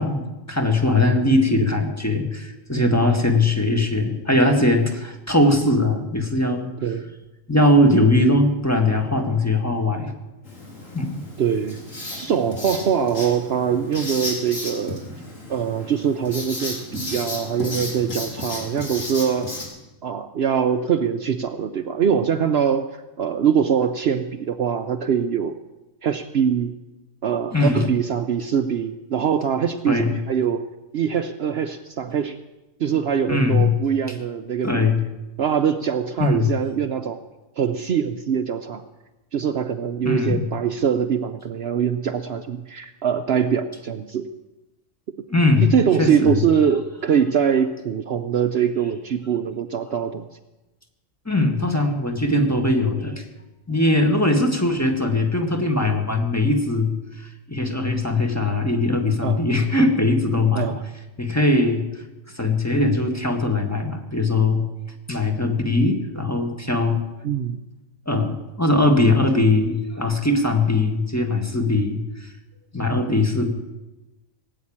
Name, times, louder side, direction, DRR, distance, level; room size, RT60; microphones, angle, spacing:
voice 1, 0.0-6.7 7.5-10.1 10.9-11.2 27.5-27.9 29.9-30.1 33.3-33.7 34.6-35.0 36.2-36.5 40.0-40.5 45.3-46.4 51.3-53.3 53.7-60.7 61.2-61.8 62.4-64.6 65.1-67.0 68.1-72.3 72.7-73.5, left 2 dB, 10° left, 3 dB, 1.7 m, -20 dB
voice 2, 2.8-3.1 6.8-7.1 11.4-11.8 12.2-15.0 15.5-19.5 20.0-22.9 23.2-25.5 26.0-26.8 27.2-30.7 30.9-32.4 32.8-34.9 35.4-37.2 37.6-38.8 39.3-44.3 45.6-50.2 59.2-59.4 60.5-60.8 67.2-67.6 72.9-73.3, right 7 dB, 60° right, 9 dB, 0.9 m, -23 dB
Writing, 10.4-19.6, left 2 dB, 90° left, 3.8 m, -33 dB
18.5 x 9.0 x 8.7 m, 1.1 s
omnidirectional pair, 1.3 m